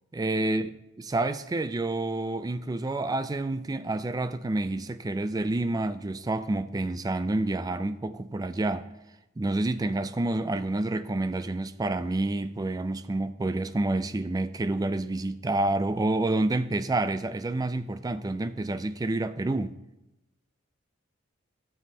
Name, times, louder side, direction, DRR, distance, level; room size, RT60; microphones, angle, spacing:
voice 1, 0.1-0.7 1.1-8.9 9.4-19.8, right 2 dB, 20° right, 0.3 m, -28 dB
13.5 x 7.1 x 2.8 m
head